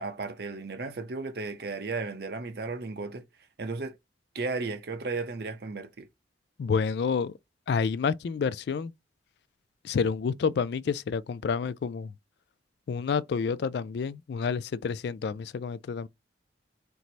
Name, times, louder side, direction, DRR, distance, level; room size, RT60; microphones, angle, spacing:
voice 1, 0.0-3.2 3.6-4.0 4.3-6.1, right 3 dB, 55° right, 0.6 m, -34 dB
voice 2, 6.6-7.3 7.7-8.9 9.8-12.1 12.9-16.1, left 5 dB, 60° left, 0.3 m, -29 dB
4.5 x 2.0 x 4.0 m
head